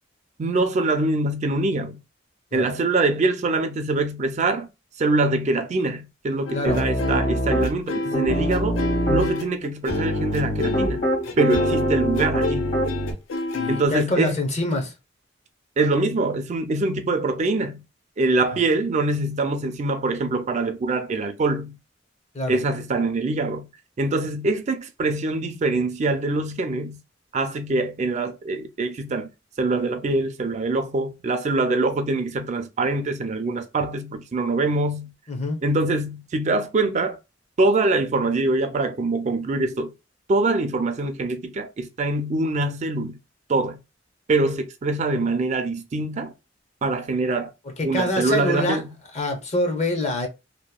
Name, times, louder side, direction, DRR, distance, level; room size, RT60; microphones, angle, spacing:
voice 1, 0.4-2.0 2.5-4.7 5.0-8.8 9.1-11.1 11.4-12.7 13.7-14.4 15.8-17.8 18.2-21.8 22.5-23.7 24.0-27.0 27.3-29.3 29.6-35.1 35.6-37.2 37.6-39.9 40.3-43.2 43.5-43.8 44.3-46.3 46.8-47.5 47.8-48.9, right 2 dB, 40° right, 0.4 m, -24 dB
sound 1, 6.5-13.9, left 3 dB, 80° left, 0.5 m, -29 dB
voice 2, 6.5-6.8 11.3-11.4 13.5-14.9 22.3-22.6 35.3-35.6 47.8-48.8 49.1-50.3, left 2 dB, 35° left, 0.7 m, -25 dB
Piano, 6.7-7.7 8.1-9.2 9.9-13.1, right 1 dB, 55° left, 1.6 m, -24 dB
2.8 x 2.1 x 2.2 m
head